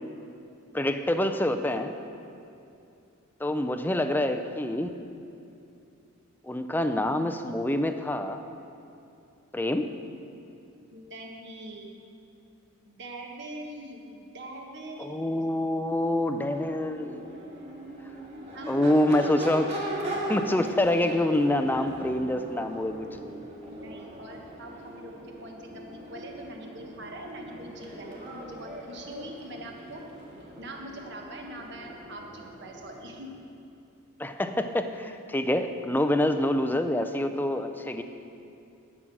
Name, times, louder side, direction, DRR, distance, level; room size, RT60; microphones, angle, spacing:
voice 1, 0.7-1.9 3.4-5.0 6.4-8.4 9.5-9.9 15.0-17.2 18.7-19.7 20.3-23.1 34.2-38.0, left 1 dB, 10° left, 8 dB, 0.4 m, -26 dB
voice 2, 10.9-11.9 12.8-15.4 18.5-18.9 23.7-30.0 30.6-33.3, right 1 dB, 50° right, 1 dB, 1.4 m, -43 dB
Crowd / Race car auto racing / Accelerating revving vroom, 16.2-33.3, right 1 dB, 30° right, 2.0 m, -40 dB
12.0 x 6.1 x 7.8 m, 2.6 s
head